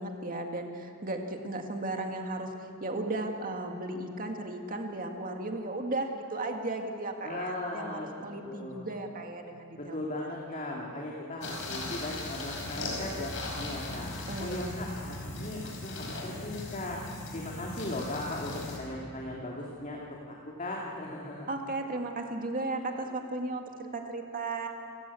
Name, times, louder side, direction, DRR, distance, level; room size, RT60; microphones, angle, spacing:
voice 1, 0.0-10.7 14.3-14.8 21.5-24.7, right 2 dB, 40° right, 3 dB, 2.1 m, -35 dB
voice 2, 7.2-8.1 8.4-8.9 9.7-14.1 14.4-17.0 17.3-21.5, left 1 dB, 40° left, -2 dB, 2.5 m, -38 dB
sound 1, 11.4-18.8, left 2 dB, 65° left, 5.2 m, -38 dB
28.5 x 15.5 x 8.5 m, 2.5 s
head